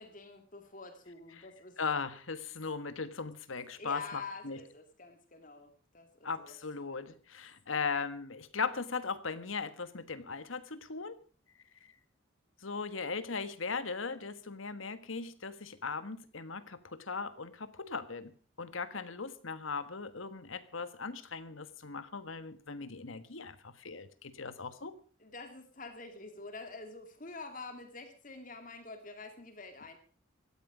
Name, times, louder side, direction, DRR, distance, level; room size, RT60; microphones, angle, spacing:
voice 1, 0.0-1.8 3.8-6.6 25.2-30.0, left 3 dB, 40° left, 7 dB, 2.3 m, -47 dB
voice 2, 1.8-4.6 6.2-11.2 12.6-24.9, left 4 dB, 90° left, 13 dB, 1.5 m, -38 dB
17.0 x 14.0 x 5.0 m, 0.39 s
head